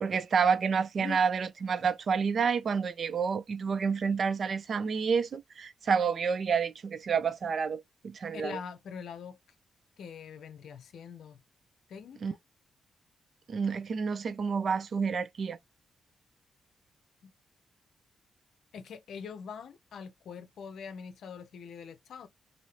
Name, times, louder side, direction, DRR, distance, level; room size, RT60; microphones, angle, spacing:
voice 1, 0.0-8.6 12.2-12.3 13.5-15.6, right 6 dB, 60° right, 0.5 m, -29 dB
voice 2, 8.3-9.4 10.0-11.4 11.9-12.2 17.2-17.3 18.7-22.3, left 6 dB, 70° left, 0.6 m, -43 dB
2.7 x 2.6 x 3.2 m
hypercardioid pair, 40°, 0 cm